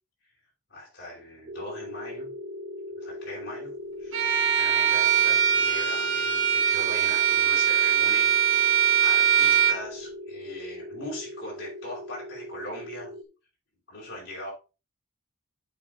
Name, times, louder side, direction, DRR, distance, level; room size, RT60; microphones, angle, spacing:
voice 1, 0.7-2.3 3.0-3.7 4.0-4.2 4.6-13.1 13.9-14.5, left 1 dB, 65° left, -5 dB, 5.1 m, -40 dB
sound 1, 1.5-13.2, left 1 dB, 50° right, 1.2 m, -39 dB
Bowed string instrument, 4.1-9.8, right 9 dB, 85° right, 2.1 m, -22 dB
8.4 x 5.1 x 3.8 m, 0.31 s
head